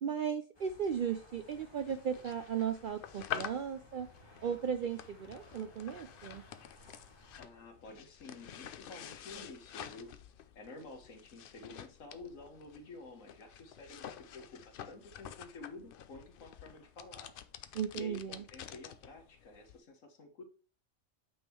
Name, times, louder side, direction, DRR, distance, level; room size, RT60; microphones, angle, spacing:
voice 1, 0.0-4.1 4.4-6.4 17.7-18.4, right 7 dB, 65° right, 8 dB, 0.5 m, -36 dB
sound 1, 0.5-7.4, left 1 dB, 20° left, 1.6 m, -59 dB
sound 2, 0.7-19.8, left 9 dB, 60° left, 0.6 m, -49 dB
voice 2, 7.4-10.2 10.5-17.3 17.9-20.4, left 3 dB, 80° left, 5 dB, 1.6 m, -50 dB
8.7 x 3.6 x 4.4 m, 0.39 s
omnidirectional pair, 1.3 m